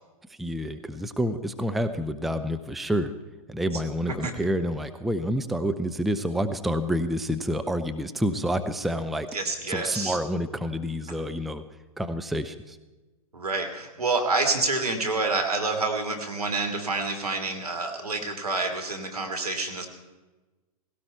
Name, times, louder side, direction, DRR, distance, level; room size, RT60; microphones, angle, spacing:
voice 1, 0.4-3.1 3.5-9.3 9.7-11.6 12.0-12.8, equal, ahead, 9 dB, 0.5 m, -28 dB
voice 2, 9.3-10.2 13.3-19.9, right 3 dB, 80° right, 4 dB, 2.9 m, -28 dB
17.0 x 17.0 x 4.5 m, 1.2 s
figure-of-eight pair, 110°, 19 cm